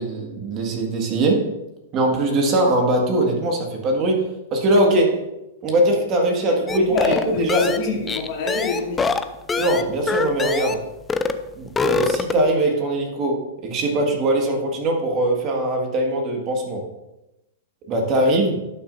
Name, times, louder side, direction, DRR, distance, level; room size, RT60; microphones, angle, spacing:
voice 1, 0.0-1.5 1.9-4.2 4.5-5.2 5.6-7.6 9.6-10.8 11.6-16.8 17.9-18.6, right 1 dB, 35° right, 1 dB, 1.8 m, -21 dB
voice 2, 6.4-9.1, left 5 dB, 55° left, 0 dB, 2.1 m, -25 dB
sound 1, 6.7-10.8 11.1-11.4 11.7-12.5, left 4 dB, 15° left, 0.4 m, -24 dB
11.5 x 6.2 x 2.6 m, 0.94 s
hypercardioid pair, 130°, 0 cm